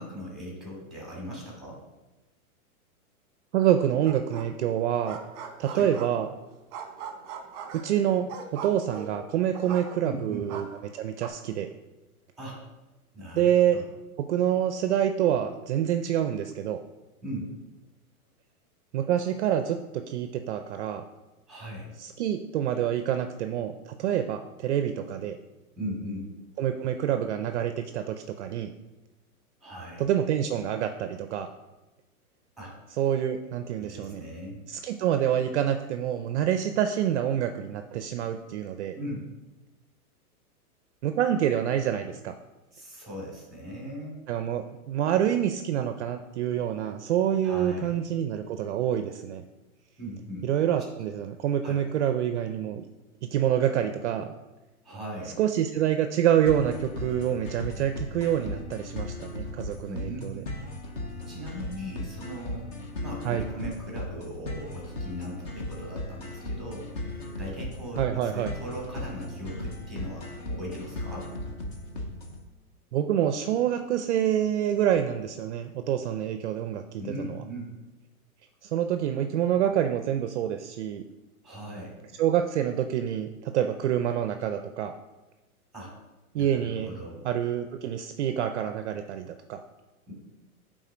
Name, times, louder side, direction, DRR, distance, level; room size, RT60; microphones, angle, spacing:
voice 1, 0.0-1.8 5.7-5.9 10.0-10.5 12.4-12.6 13.1-13.9 17.2-17.5 21.5-21.9 25.8-26.3 29.6-30.0 32.6-32.7 33.8-34.6 39.0-39.2 42.7-44.2 47.4-48.0 50.0-50.5 51.6-51.8 54.8-55.4 59.9-60.5 61.2-62.7 63.0-71.3 77.0-77.7 81.4-81.9 85.7-85.9 86.3-87.2 90.1-90.2, equal, ahead, -3 dB, 2.6 m, -39 dB
voice 2, 3.5-5.2 5.6-6.3 7.7-10.7 10.9-11.7 13.3-13.8 14.3-16.8 18.9-21.0 22.0-25.4 26.6-28.7 30.0-31.5 33.0-34.2 34.7-39.0 41.0-42.3 44.3-49.4 50.4-52.8 53.2-54.3 55.4-60.4 63.2-63.4 68.0-68.5 72.9-77.4 78.6-81.0 82.2-84.9 86.3-86.9 87.2-89.6, right 10 dB, 50° right, 8 dB, 0.5 m, -27 dB
sound 1, 4.0-4.7 4.9-6.3 6.7-10.2 10.5-11.3, right 7 dB, 30° right, 1.1 m, -40 dB
sound 2, 56.5-72.4, left 1 dB, 20° left, 0.5 m, -37 dB
9.1 x 3.8 x 5.0 m, 1.1 s
hypercardioid pair, 150°, 44 cm